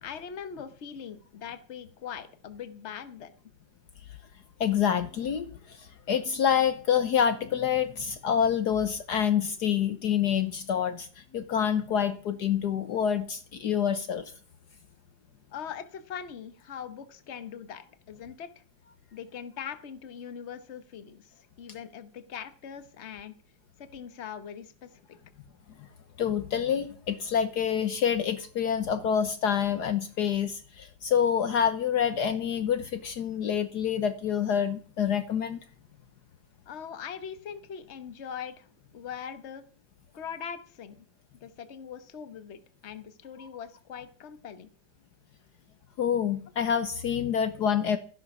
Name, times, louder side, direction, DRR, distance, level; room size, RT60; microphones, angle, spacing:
voice 1, 0.0-3.3 15.5-18.5 19.1-21.3 21.6-23.3 23.8-25.2 36.7-38.7 38.9-39.6 40.1-41.0 41.4-44.7, left 8 dB, 40° left, 11 dB, 1.3 m, -41 dB
voice 2, 4.6-14.2 26.2-35.6 46.0-48.0, left 8 dB, 65° left, 10 dB, 1.4 m, -27 dB
14.0 x 10.5 x 6.1 m, 0.42 s
omnidirectional pair, 2.0 m